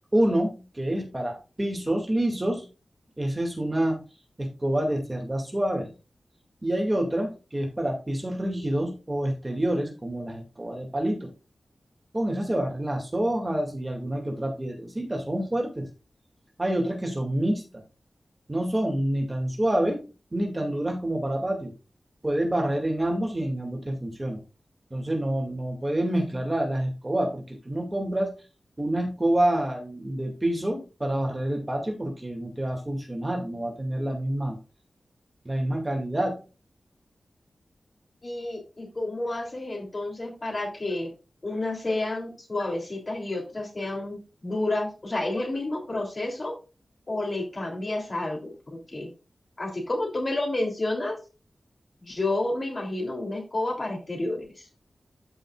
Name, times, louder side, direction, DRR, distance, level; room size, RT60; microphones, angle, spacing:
voice 1, 0.1-2.7 3.2-4.0 4.4-5.9 6.6-11.3 12.1-15.9 16.6-17.8 18.5-20.0 20.3-21.7 22.2-24.4 24.9-28.3 28.8-34.6 35.4-36.4, right 1 dB, 20° right, 2 dB, 2.3 m, -27 dB
voice 2, 38.2-41.1 41.4-46.5 47.1-48.5 48.9-49.1 49.6-51.2 52.0-54.7, left 2 dB, 40° left, 1 dB, 3.1 m, -30 dB
13.0 x 5.4 x 2.4 m, 0.32 s
wide cardioid pair, 75°, 0 cm